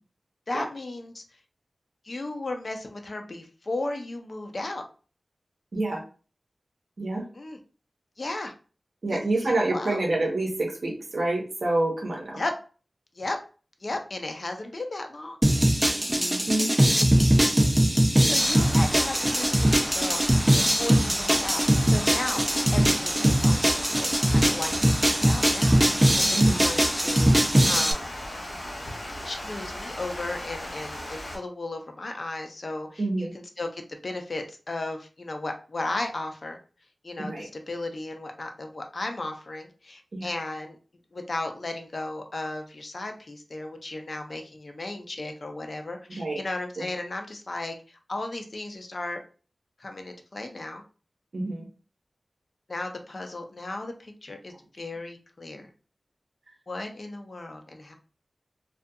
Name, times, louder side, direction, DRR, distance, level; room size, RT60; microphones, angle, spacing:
voice 1, 0.5-1.2 2.0-4.8 7.3-7.6 8.2-8.5 9.1-10.1 12.4-12.5 13.1-13.4 13.8-15.4 18.3-20.4 20.8-28.1 29.2-36.6 37.0-40.8 41.1-49.2 49.8-50.8 52.7-55.7 56.7-58.0, left 2 dB, 55° left, 5 dB, 0.4 m, -35 dB
voice 2, 9.0-12.4 16.1-16.7 26.3-26.6 33.0-33.3 37.2-37.5 40.1-40.2 46.2-46.4 51.3-51.7, right 2 dB, 70° right, -1 dB, 0.6 m, -27 dB
sound 1, 15.4-27.9, right 1 dB, 15° right, 0.4 m, -21 dB
Water, 18.4-31.4, left 1 dB, 85° left, 1.2 m, -37 dB
2.4 x 2.2 x 2.6 m, 0.37 s
wide cardioid pair, 80°, 0 cm